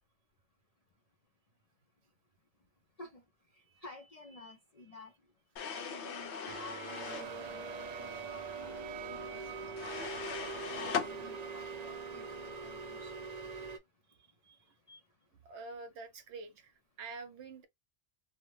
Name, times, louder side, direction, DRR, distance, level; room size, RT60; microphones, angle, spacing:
voice 1, 3.5-5.1 5.7-10.3 10.7-13.3 14.9-15.0, left 3 dB, 50° left, 0.4 m, -52 dB
sound 1, 5.6-7.3 9.8-11.1, left 6 dB, 70° left, 0.9 m, -39 dB
sound 2, 6.5-13.8, right 4 dB, 90° right, 0.3 m, -42 dB
voice 2, 14.1-14.6 15.5-17.7, right 4 dB, 70° right, 0.9 m, -48 dB
2.7 x 2.1 x 3.0 m
omnidirectional pair, 1.3 m